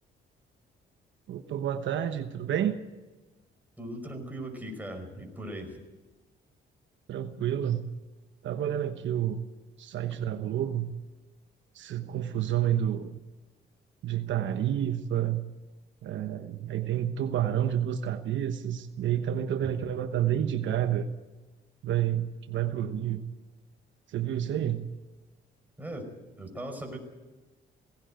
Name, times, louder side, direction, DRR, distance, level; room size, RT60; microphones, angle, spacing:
voice 1, 1.3-2.8 7.1-7.8 8.4-9.4 9.8-10.9 11.7-13.1 14.0-15.4 16.0-21.1 21.8-23.2 24.1-24.9, right 10 dB, 70° right, 8 dB, 1.1 m, -29 dB
voice 2, 3.8-5.8 19.6-19.7 25.8-27.0, right 1 dB, 10° right, 2 dB, 5.5 m, -39 dB
18.0 x 16.5 x 9.2 m, 1.2 s
cardioid pair, 90°, 20 cm